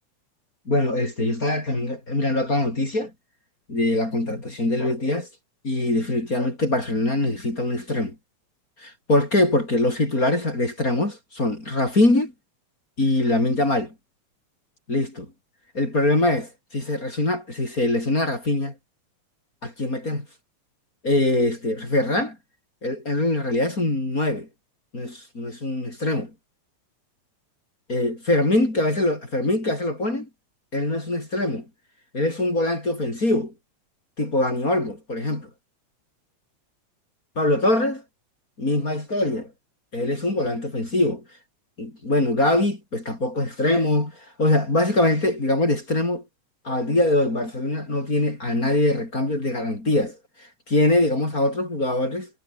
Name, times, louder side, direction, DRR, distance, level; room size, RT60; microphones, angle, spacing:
voice 1, 0.7-3.1 3.7-5.3 5.6-8.2 8.8-12.3 13.0-13.9 14.9-15.3 15.7-18.7 19.6-20.3 21.0-22.4 22.8-24.5 24.9-26.3 27.9-30.3 30.7-31.7 32.1-33.5 34.2-35.5 37.4-38.0 38.6-39.5 39.9-41.2 41.8-46.2 46.6-50.2 50.7-52.3, left 1 dB, 25° left, 5.6 m, -23 dB
omnidirectional pair, 3.3 m